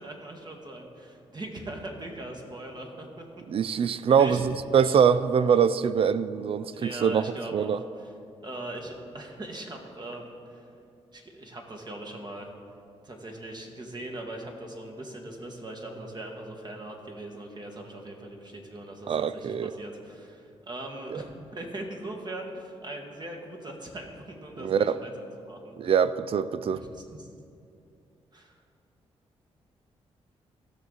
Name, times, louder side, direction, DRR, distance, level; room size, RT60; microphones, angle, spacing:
voice 1, 0.0-3.2 3.7-4.4 4.7-5.0 6.7-8.1 8.4-10.7 11.1-12.5 13.0-25.1 25.4-25.9 26.7-27.3 28.3-28.5, right 1 dB, 40° right, 1.8 m, -40 dB
voice 2, 3.5-7.3 7.5-7.8 19.1-19.7 21.1-21.2 24.6-25.0 25.8-26.8, right 7 dB, 55° right, 0.4 m, -23 dB
16.0 x 6.3 x 4.0 m
cardioid pair, 65°, 12 cm